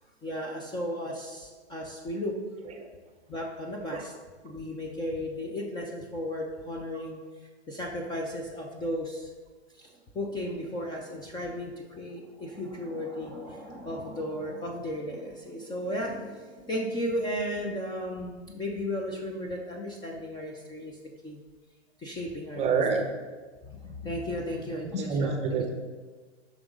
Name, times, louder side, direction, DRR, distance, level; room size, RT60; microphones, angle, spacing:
voice 1, 0.2-2.4 3.3-4.1 4.4-7.2 7.7-9.3 9.8-21.0 21.2-21.4 22.0-23.1 23.6-25.4, left 1 dB, 10° left, 0 dB, 0.7 m, -35 dB
voice 2, 22.6-23.0 25.1-25.7, right 5 dB, 20° right, 4 dB, 0.9 m, -27 dB
9.6 x 6.1 x 3.8 m, 1.3 s
hypercardioid pair, 135°, 35 cm